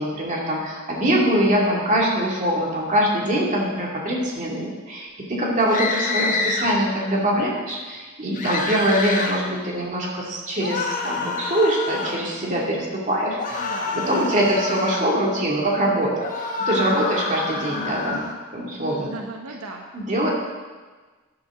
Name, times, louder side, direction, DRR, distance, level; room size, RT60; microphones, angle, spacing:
voice 1, 0.0-18.2 18.5-19.1 19.9-20.3, right 1 dB, 35° right, -3 dB, 2.7 m, -23 dB
sound 1, 5.7-6.7 8.4-9.4 10.6-12.2 13.4-15.1 16.2-18.3, left 3 dB, 40° left, 1.3 m, -27 dB
voice 2, 6.0-6.3 13.6-14.0 18.8-19.9, right 2 dB, 85° right, 2 dB, 1.1 m, -37 dB
14.0 x 10.5 x 3.9 m, 1.3 s
head